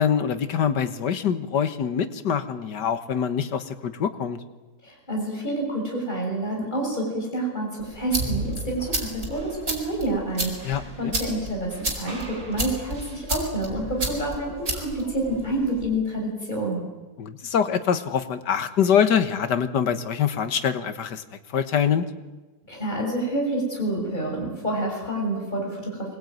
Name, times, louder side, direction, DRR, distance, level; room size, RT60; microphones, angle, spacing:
voice 1, 0.0-4.4 10.6-11.1 17.2-21.2 21.5-22.1, left 8 dB, 85° left, 11 dB, 1.9 m, -24 dB
voice 2, 4.8-16.8 22.7-26.2, right 1 dB, 25° left, -1 dB, 6.7 m, -28 dB
sound 1, 7.8-15.9, right 2 dB, 50° right, 5.0 m, -32 dB
24.5 x 20.0 x 9.3 m, 1.2 s
omnidirectional pair, 1.8 m